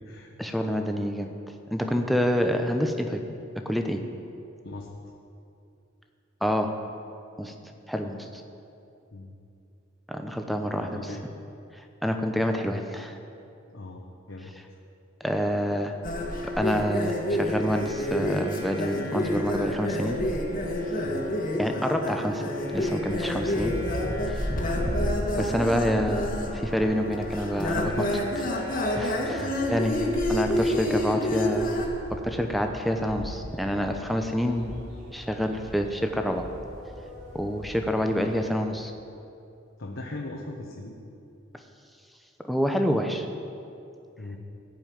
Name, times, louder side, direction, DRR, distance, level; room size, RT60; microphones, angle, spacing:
voice 1, 0.4-1.3 1.7-3.2 3.6-4.0 6.4-6.7 7.4-7.5 7.9-8.4 10.1-11.1 11.7-13.2 15.2-16.0 16.4-20.2 21.6-23.7 25.4-28.1 29.0-31.7 32.1-34.7 35.1-36.5 37.3-38.9 42.5-43.3, equal, ahead, 4 dB, 0.8 m, -27 dB
voice 2, 10.7-11.2 13.7-14.5 21.0-21.3 24.5-25.0 29.4-29.7 37.8-38.0 39.8-40.9 44.2-44.4, left 2 dB, 70° left, -1 dB, 1.1 m, -39 dB
sound 1, 16.0-31.9, left 1 dB, 45° left, 1.5 m, -28 dB
sound 2, 23.2-38.5, equal, 35° right, 3.2 m, -39 dB
15.0 x 5.4 x 9.4 m, 2.6 s
head